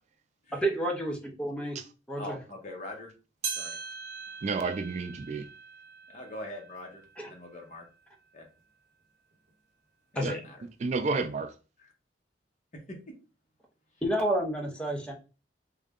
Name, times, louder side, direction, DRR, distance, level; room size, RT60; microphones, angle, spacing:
voice 1, 0.6-1.8 2.1-2.4 7.2-7.3 10.2-10.4 14.0-15.1, right 1 dB, 5° left, 0.6 m, -30 dB
voice 2, 2.2-3.1 3.6-3.8 6.1-7.9 8.3-8.5 10.1-10.6 12.7-13.1, left 1 dB, 40° left, 1.0 m, -42 dB
sound 1, 3.4-8.1 8.6-8.7 9.5-9.6 10.5-10.6, right 6 dB, 60° right, 1.0 m, -41 dB
voice 3, 4.4-5.5 10.2-10.4 10.8-11.5, right 4 dB, 40° right, 0.3 m, -31 dB
3.6 x 2.2 x 3.5 m
head